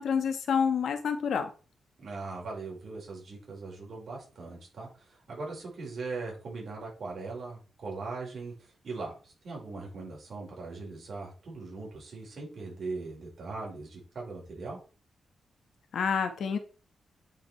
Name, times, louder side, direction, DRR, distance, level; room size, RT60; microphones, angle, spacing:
voice 1, 0.0-1.5 15.9-16.6, left 6 dB, 75° left, 8 dB, 1.3 m, -28 dB
voice 2, 2.0-14.8, right 3 dB, 50° right, -3 dB, 5.2 m, -40 dB
8.9 x 5.3 x 4.5 m, 0.36 s
wide cardioid pair, 120°, 0 cm